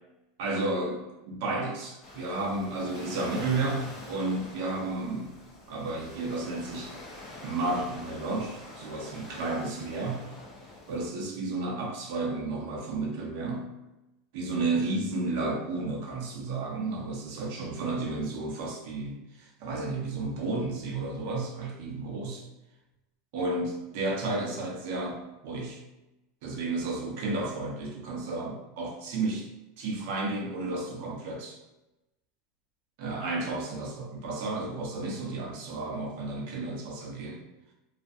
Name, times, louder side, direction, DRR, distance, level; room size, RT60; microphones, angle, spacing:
voice 1, 0.4-5.3 5.7-6.9 7.4-10.2 10.9-13.7 14.3-22.4 23.3-25.8 26.4-29.5 29.8-31.6 33.0-37.4, right 2 dB, 55° right, -1 dB, 0.6 m, -32 dB
Waves surf, 2.0-11.1, left 1 dB, 30° left, 0.6 m, -45 dB
2.3 x 2.2 x 2.6 m, 0.97 s
supercardioid pair, 170°, 0 cm